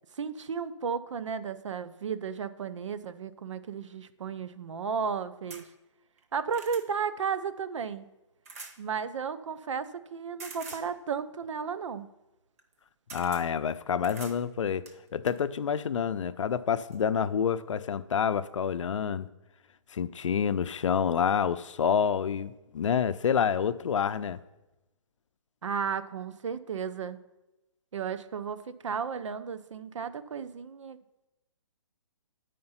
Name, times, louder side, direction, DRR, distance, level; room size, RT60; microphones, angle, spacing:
voice 1, 0.1-5.7 6.3-8.1 8.8-12.1 25.6-27.2 27.9-31.0, right 6 dB, 75° right, 13 dB, 0.6 m, -34 dB
sound 1, 5.5-5.7 6.2-6.9 8.5-8.8 10.4-10.9 12.6-12.7 13.1-13.5 14.0-14.4 14.9-15.4 16.4-16.5 16.9-17.0, right 3 dB, 30° right, 0.7 m, -45 dB
voice 2, 13.1-14.9 15.1-19.3 19.9-24.4, left 7 dB, 80° left, 13 dB, 0.5 m, -28 dB
8.7 x 5.1 x 5.6 m, 1.0 s
hypercardioid pair, 175°, 16 cm